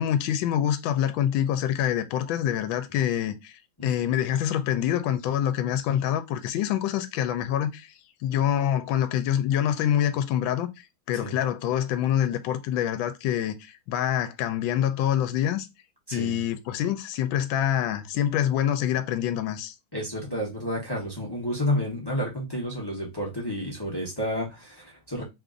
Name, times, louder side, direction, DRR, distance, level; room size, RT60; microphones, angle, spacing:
voice 1, 0.0-7.9 8.2-15.7 16.1-19.7, left 10 dB, 80° left, 1.3 m, -26 dB
voice 2, 19.9-25.2, equal, 30° left, 0.4 m, -30 dB
3.5 x 2.5 x 3.6 m
omnidirectional pair, 2.2 m